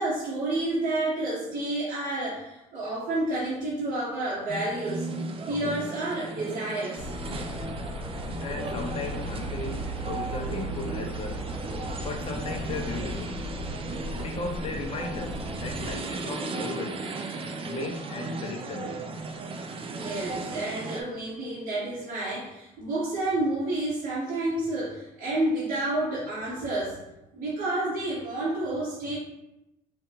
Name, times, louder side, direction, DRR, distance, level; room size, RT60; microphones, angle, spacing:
voice 1, 0.0-5.1 5.5-7.1 19.8-27.0 27.3-29.2, right 2 dB, 90° right, -12 dB, 1.2 m, -30 dB
sound 1, 4.5-21.0, right 3 dB, 35° right, 0.4 m, -36 dB
sound 2, 7.0-16.0, equal, 10° left, 0.8 m, -36 dB
voice 2, 8.4-11.5 12.0-13.3 14.1-17.0 17.6-19.0, left 4 dB, 40° left, 3 dB, 0.6 m, -36 dB
3.4 x 2.3 x 3.0 m, 0.91 s
supercardioid pair, 75°, 16 cm